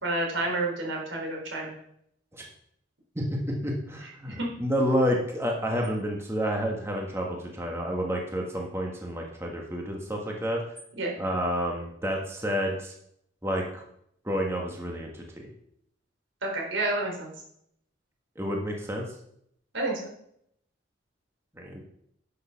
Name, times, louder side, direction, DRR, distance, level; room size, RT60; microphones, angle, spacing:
voice 1, 0.0-1.7 4.3-4.5 11.0-11.2 16.4-17.3 19.7-20.1, right 2 dB, 80° right, -1 dB, 4.0 m, -29 dB
voice 2, 3.1-10.6 11.2-12.9 13.4-13.8 14.2-15.4 18.3-19.1 21.5-21.8, equal, 15° right, 0 dB, 1.5 m, -29 dB
11.0 x 6.6 x 5.9 m, 0.71 s
head